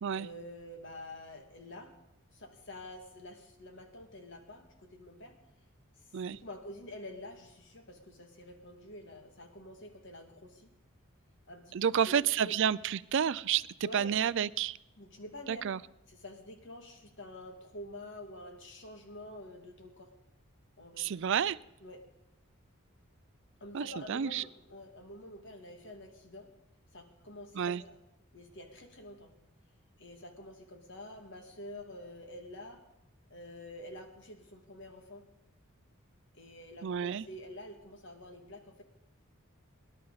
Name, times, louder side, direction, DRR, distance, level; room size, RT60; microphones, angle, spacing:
voice 1, 0.1-1.9 2.3-5.4 6.3-10.7 11.5-12.2 12.4-12.6 13.8-14.1 15.0-15.6 16.1-20.1 20.8-21.1 21.8-22.0 23.6-26.5 26.9-28.0 28.3-29.3 30.0-32.8 33.3-35.3 36.3-38.8, left 1 dB, 55° left, 4 dB, 2.0 m, -48 dB
voice 2, 11.7-13.7 13.9-14.8 15.5-15.8 21.0-21.6 23.7-24.4 27.6-27.8 36.8-37.3, right 8 dB, 55° right, 17 dB, 0.4 m, -30 dB
23.5 x 11.0 x 4.0 m, 0.91 s
head